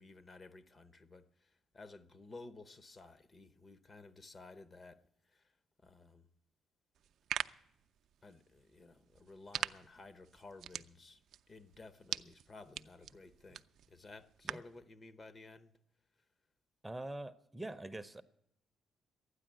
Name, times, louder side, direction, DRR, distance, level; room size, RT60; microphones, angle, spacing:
voice 1, 0.0-6.3 8.2-15.7, left 3 dB, 35° left, 0.8 m, -55 dB
sound 1, 7.0-14.8, right 10 dB, 70° right, 0.4 m, -45 dB
voice 2, 16.8-18.2, right 2 dB, 15° right, 0.6 m, -44 dB
12.0 x 9.9 x 9.1 m
cardioid pair, 90°, 0 cm